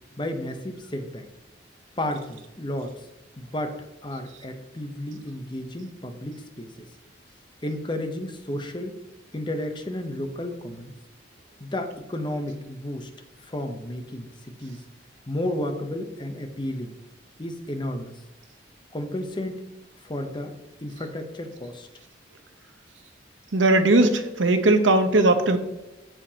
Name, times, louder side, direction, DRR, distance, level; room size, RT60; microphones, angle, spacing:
voice 1, 0.2-1.3 2.0-2.9 3.4-6.7 7.6-9.0 9.3-10.9 11.6-13.1 13.4-14.8 15.3-16.9 17.4-18.1 18.9-19.6 20.0-20.5 20.8-21.9, left 1 dB, 25° left, 6 dB, 0.8 m, -32 dB
voice 2, 23.5-25.6, right 2 dB, 90° right, 8 dB, 0.9 m, -19 dB
14.0 x 4.8 x 2.9 m, 1.0 s
head